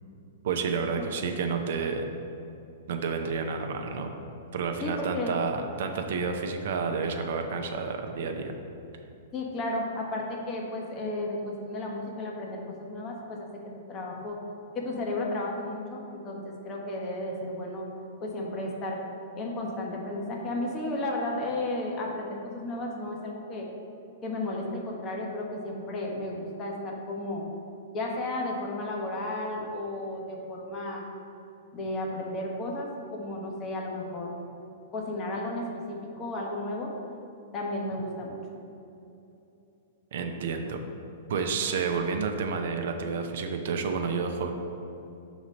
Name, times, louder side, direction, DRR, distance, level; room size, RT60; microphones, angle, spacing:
voice 1, 0.4-2.0 2.9-4.1 4.5-8.5 40.1-40.8 41.3-44.5, right 5 dB, 60° right, 5 dB, 0.5 m, -30 dB
voice 2, 4.8-5.4 9.3-14.4 14.7-17.8 18.2-19.0 19.3-23.7 24.2-27.4 27.9-31.0 31.7-34.3 34.9-36.9 37.5-38.4, left 1 dB, 30° left, -1 dB, 1.1 m, -33 dB
5.0 x 4.0 x 5.3 m, 2.8 s
figure-of-eight pair, 110°, 0 cm